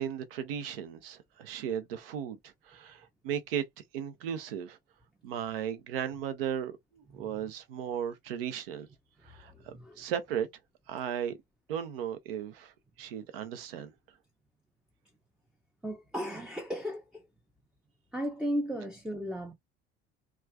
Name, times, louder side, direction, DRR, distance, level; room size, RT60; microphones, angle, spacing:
voice 1, 0.0-3.7 3.9-4.8 5.2-8.9 9.2-10.5 10.9-11.4 11.7-12.7 13.0-13.9, right 9 dB, 65° right, 0.7 m, -36 dB
voice 2, 7.1-7.4 9.4-10.0 15.8-17.3 18.1-19.5, equal, ahead, 0.5 m, -36 dB
3.0 x 2.4 x 2.2 m
figure-of-eight pair, 65°, 31 cm